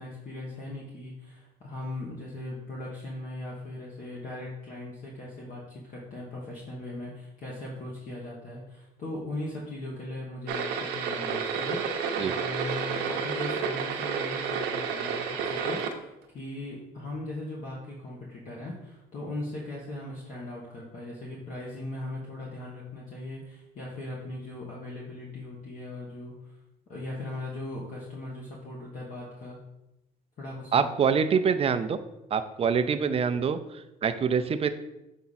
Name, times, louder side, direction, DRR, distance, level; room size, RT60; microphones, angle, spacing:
voice 1, 0.0-26.6 26.9-29.6 30.4-31.2, left 1 dB, 50° left, -4 dB, 1.3 m, -39 dB
sound 1, 10.5-15.9, right 6 dB, 90° right, 0.8 m, -30 dB
voice 2, 30.7-32.0 32.3-34.7, right 6 dB, 35° right, 10 dB, 0.5 m, -25 dB
6.9 x 3.6 x 4.1 m, 0.90 s
cardioid pair, 110°, 17 cm